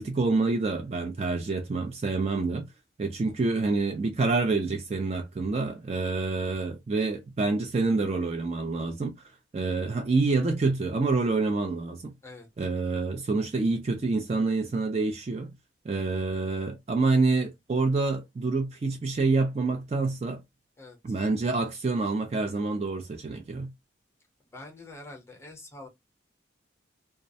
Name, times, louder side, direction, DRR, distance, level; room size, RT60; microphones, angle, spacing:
voice 1, 0.0-2.7 3.0-9.1 9.5-12.1 12.6-15.5 15.8-20.4 21.0-23.7, right 3 dB, 35° right, 0.3 m, -27 dB
voice 2, 12.2-12.7 20.8-21.2 24.5-25.9, left 2 dB, 15° left, 0.7 m, -46 dB
2.3 x 2.0 x 2.6 m
head